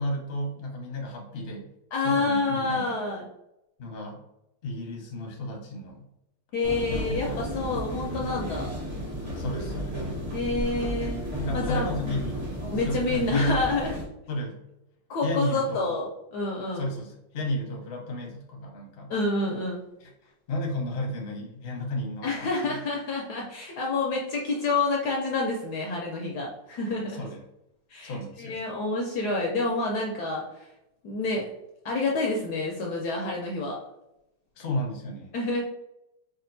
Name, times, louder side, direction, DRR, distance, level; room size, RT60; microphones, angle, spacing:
voice 1, 0.0-1.7 2.0-3.0 3.8-4.2 4.6-6.1 6.9-7.7 9.3-10.0 11.4-12.5 12.8-13.6 14.3-14.6 15.2-15.9 16.7-19.1 20.0-20.1 20.5-22.8 27.2-27.4 28.0-28.6 34.6-35.3, left 1 dB, 45° left, -1 dB, 0.8 m, -33 dB
voice 2, 1.9-3.2 6.5-8.7 10.3-11.2 11.5-12.2 12.7-14.0 15.1-16.9 19.1-19.8 22.2-27.2 27.9-30.7 31.0-31.5 31.8-33.8 35.3-35.6, left 3 dB, 70° left, -1 dB, 1.0 m, -28 dB
sound 1, 6.6-14.0, equal, 30° right, 1.3 m, -33 dB
5.0 x 2.4 x 2.6 m, 0.88 s
omnidirectional pair, 2.0 m